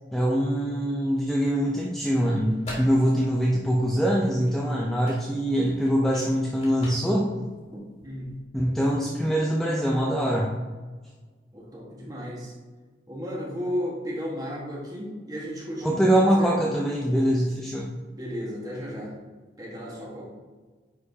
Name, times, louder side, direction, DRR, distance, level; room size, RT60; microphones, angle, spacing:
voice 1, 0.1-7.3 8.5-10.5 15.8-17.9, equal, 5° left, -4 dB, 0.5 m, -23 dB
sound 1, 2.4-8.4, left 1 dB, 40° left, 1.9 m, -45 dB
voice 2, 7.7-8.3 11.5-12.5 13.1-16.6 18.1-19.1 19.6-20.3, equal, 20° right, -4 dB, 1.5 m, -34 dB
9.4 x 4.4 x 2.8 m, 1.4 s
head